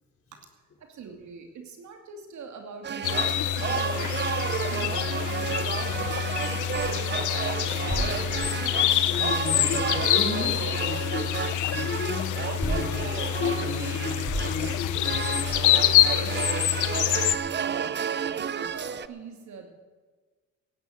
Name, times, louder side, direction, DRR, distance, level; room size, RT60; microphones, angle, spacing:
voice 1, 0.8-8.7 17.3-18.1 18.4-19.7, right 5 dB, 70° right, 4 dB, 2.5 m, -45 dB
sound 1, 2.8-19.1, right 8 dB, 35° right, 0.6 m, -32 dB
sound 2, 3.0-17.3, left 13 dB, 80° left, 0.8 m, -26 dB
sound 3, 7.8-10.1 10.4-16.2, right 1 dB, ahead, 6.0 m, -36 dB
voice 2, 9.0-12.3 12.6-15.8 16.1-16.5, left 4 dB, 45° left, 1 dB, 4.1 m, -34 dB
17.5 x 9.7 x 6.5 m, 1.4 s
cardioid pair, 90°, 30 cm